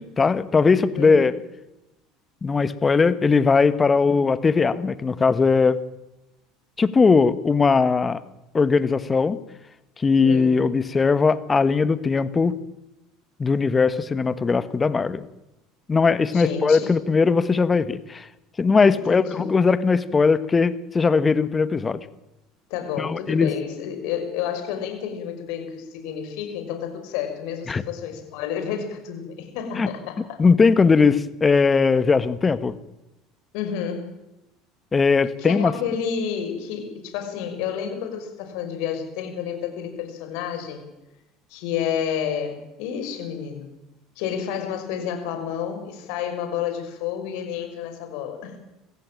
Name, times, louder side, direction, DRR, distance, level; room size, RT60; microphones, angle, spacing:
voice 1, 0.0-1.3 2.4-5.8 6.8-8.2 8.5-9.4 10.0-12.5 13.4-15.3 15.9-18.3 18.6-22.0 23.0-23.5 27.7-27.8 29.8-29.9 30.4-32.7 34.9-35.7, left 4 dB, 25° left, 14 dB, 1.6 m, -19 dB
voice 2, 10.2-10.6 16.3-16.9 18.9-19.5 22.7-30.4 33.5-34.1 35.4-40.8 41.5-43.7 44.2-48.6, left 8 dB, 65° left, 6 dB, 5.8 m, -30 dB
24.0 x 15.5 x 9.1 m, 0.96 s
hypercardioid pair, 75°, 0 cm